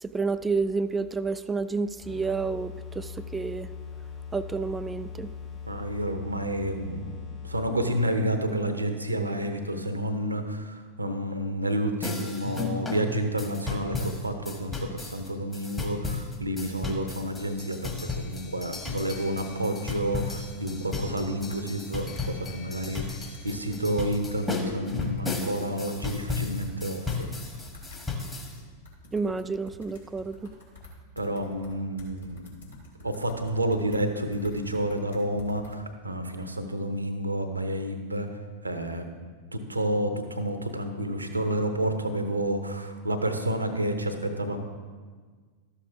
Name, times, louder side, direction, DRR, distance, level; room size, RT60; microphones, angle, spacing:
voice 1, 0.0-3.7 4.3-5.3 29.1-30.5, right 4 dB, 10° right, 13 dB, 0.3 m, -30 dB
sound 1, 2.0-7.9, left 6 dB, 35° left, 1.7 m, -40 dB
voice 2, 5.7-7.2 7.4-27.3 31.2-32.5 33.0-38.3 38.6-39.2 39.5-44.6, right 1 dB, 80° right, 7 dB, 0.9 m, -30 dB
sound 2, 12.0-28.6, left 4 dB, 15° left, 1.4 m, -34 dB
sound 3, 19.8-20.8 21.2-21.3 21.5-21.7 22.0-22.3 22.8-24.0 24.3-26.7 27.0-34.0 34.3-35.7, left 2 dB, 70° left, 2.1 m, -49 dB
13.0 x 7.1 x 3.5 m, 1.5 s
figure-of-eight pair, 90°, 0 cm